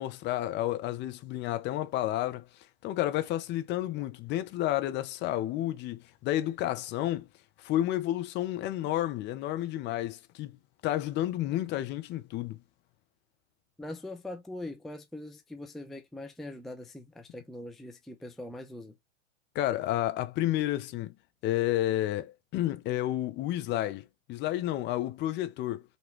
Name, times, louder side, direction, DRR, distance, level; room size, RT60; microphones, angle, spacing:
voice 1, 0.0-2.5 2.8-7.3 7.6-10.6 10.8-12.6 19.5-21.1 21.4-25.8, left 14 dB, 30° left, 0.8 m, -31 dB
voice 2, 13.8-18.9, left 1 dB, ahead, 0.5 m, -42 dB
5.2 x 3.1 x 3.1 m
hypercardioid pair, 105°, 35 cm